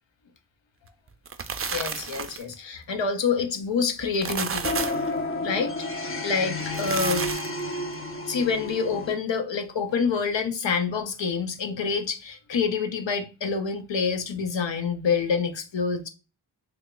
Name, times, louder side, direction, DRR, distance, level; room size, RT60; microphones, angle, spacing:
sound 1, 1.1-2.5 4.0-5.1 6.6-7.6, right 6 dB, 35° right, 0.4 m, -31 dB
voice 1, 1.7-4.7 5.4-7.3 8.2-16.1, left 5 dB, 80° left, 0.6 m, -27 dB
sound 2, 4.6-9.1, left 2 dB, 30° left, 0.5 m, -31 dB
3.4 x 2.2 x 3.7 m
wide cardioid pair, 55°, 44 cm